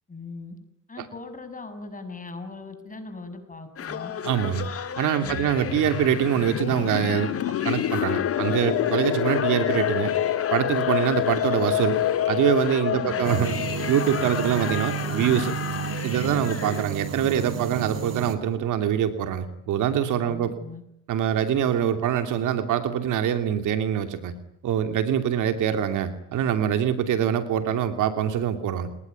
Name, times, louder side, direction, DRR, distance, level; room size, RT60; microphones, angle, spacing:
voice 1, 0.1-0.6 0.9-4.1 5.2-5.5 12.9-13.2 20.2-20.8, left 3 dB, 25° left, 9 dB, 6.9 m, -40 dB
sound 1, 3.8-16.8, left 7 dB, 50° left, 2.0 m, -34 dB
voice 2, 4.2-4.7 5.0-7.3 7.6-10.1 10.5-12.0 12.3-13.6 13.9-15.5 16.0-20.5 21.1-24.3 24.6-28.9, right 9 dB, 85° right, 8 dB, 2.7 m, -24 dB
sound 2, 5.3-15.8, left 12 dB, 85° left, 1.6 m, -27 dB
sound 3, 13.2-18.3, right 8 dB, 55° right, 3.6 m, -32 dB
29.0 x 20.5 x 9.5 m, 0.79 s
cardioid pair, 90°, 30 cm